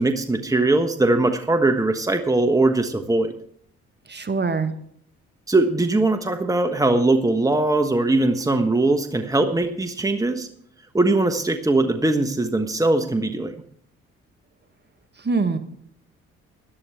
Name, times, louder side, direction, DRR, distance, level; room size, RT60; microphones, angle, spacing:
voice 1, 0.0-3.3 5.5-10.5 10.9-13.5, right 2 dB, 10° right, 8 dB, 1.3 m, -20 dB
voice 2, 4.1-4.7 15.2-15.6, right 4 dB, 30° right, 9 dB, 1.5 m, -23 dB
17.0 x 11.0 x 3.6 m, 0.64 s
hypercardioid pair, 45°, 32 cm